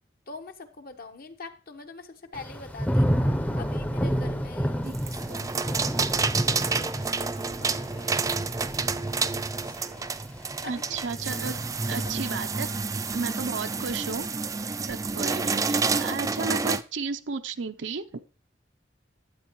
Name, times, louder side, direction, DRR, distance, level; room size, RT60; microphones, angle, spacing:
voice 1, 0.3-3.1 3.5-5.9 6.5-8.2 9.6-10.1 10.6-11.0 11.3-11.4 12.0-12.1, left 3 dB, 55° left, 6 dB, 1.2 m, -44 dB
Thunder / Rain, 2.3-13.3 13.7-14.2, equal, 10° left, 0.7 m, -31 dB
sound 1, 4.9-16.8, right 4 dB, 20° right, 0.4 m, -29 dB
voice 2, 10.6-11.5 11.9-12.7 13.1-14.3 14.9-18.2, right 4 dB, 80° right, 8 dB, 0.7 m, -33 dB
13.0 x 8.1 x 3.1 m, 0.36 s
head